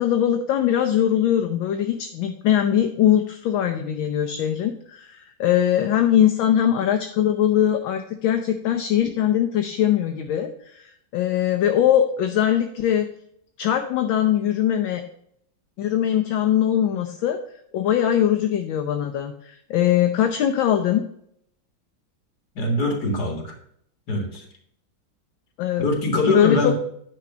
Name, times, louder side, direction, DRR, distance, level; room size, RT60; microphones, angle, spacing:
voice 1, 0.0-13.1 13.6-15.0 15.8-17.4 17.7-21.0 25.6-25.9 26.1-26.7, left 10 dB, 75° left, 5 dB, 1.5 m, -21 dB
voice 2, 22.6-23.6 24.1-24.4 25.8-26.7, left 1 dB, 50° left, 2 dB, 2.3 m, -23 dB
9.9 x 3.9 x 6.0 m, 0.68 s
omnidirectional pair, 2.3 m